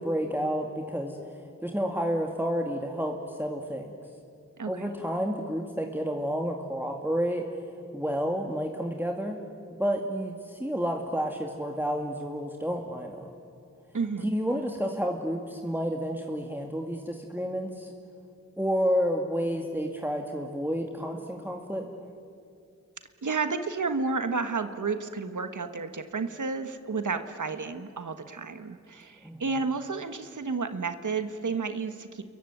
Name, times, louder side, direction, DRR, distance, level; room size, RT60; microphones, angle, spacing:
voice 1, 0.0-4.0 4.6-7.5 7.9-9.4 9.8-13.3 14.2-17.9 18.6-21.9 29.2-29.6, equal, 5° right, 2 dB, 2.2 m, -30 dB
voice 2, 4.6-4.9 13.9-14.3 23.2-32.2, right 4 dB, 90° right, 9 dB, 1.3 m, -31 dB
28.5 x 22.5 x 9.2 m, 2.4 s
wide cardioid pair, 45°, 30 cm